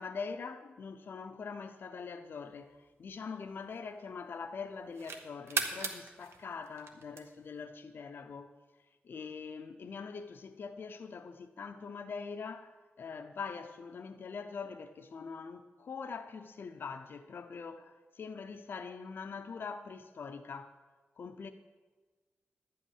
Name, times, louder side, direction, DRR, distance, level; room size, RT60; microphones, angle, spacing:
voice 1, 0.0-8.6 9.0-20.8 21.2-21.5, left 5 dB, 55° left, 0.5 m, -43 dB
sound 1, 2.5-4.2 4.7-7.6, right 4 dB, 85° right, 1.0 m, -39 dB
11.5 x 5.4 x 8.7 m
wide cardioid pair, 180°, 4 cm